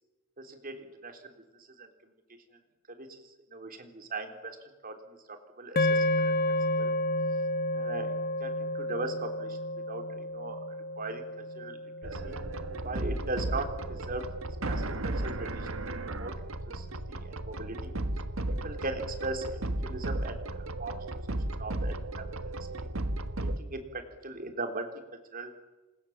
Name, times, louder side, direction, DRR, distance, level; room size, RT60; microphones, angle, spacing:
voice 1, 0.4-1.3 1.8-1.9 2.9-4.6 4.8-6.4 6.8-6.9 7.7-9.6 9.9-10.6 11.0-12.4 12.8-14.3 14.6-17.9 18.6-22.3 22.6-22.9 23.4-25.5, right 2 dB, 45° right, 6 dB, 3.5 m, -39 dB
sound 1, 5.8-14.1, left 1 dB, 50° left, 1.3 m, -31 dB
sound 2, 12.0-23.6, right 1 dB, 75° right, 1.6 m, -34 dB
28.5 x 25.0 x 7.3 m, 1.1 s
head